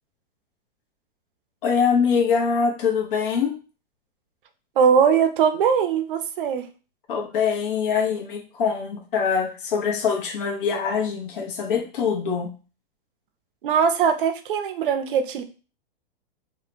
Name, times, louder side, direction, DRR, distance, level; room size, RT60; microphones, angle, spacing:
voice 1, 1.6-3.5 7.1-12.5, left 6 dB, 60° left, 0 dB, 0.9 m, -23 dB
voice 2, 4.8-6.7 13.6-15.4, right 7 dB, 60° right, 10 dB, 0.6 m, -20 dB
2.9 x 2.2 x 4.1 m, 0.35 s
hypercardioid pair, 155°, 29 cm